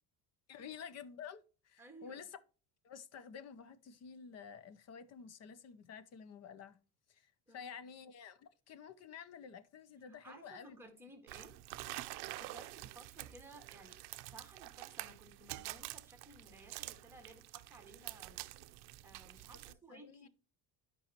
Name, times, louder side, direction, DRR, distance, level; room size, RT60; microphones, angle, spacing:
voice 1, 0.5-2.4 2.8-6.8 7.1-10.8 19.9-20.3, left 7 dB, 40° left, 0.7 m, -51 dB
voice 2, 1.8-2.2 7.5-7.9 10.1-11.5 12.0-18.4 19.0-20.3, right 2 dB, 5° right, 1.7 m, -57 dB
sound 1, 11.3-19.7, right 18 dB, 70° right, 0.6 m, -48 dB
12.0 x 5.4 x 2.9 m
cardioid pair, 175°, 41 cm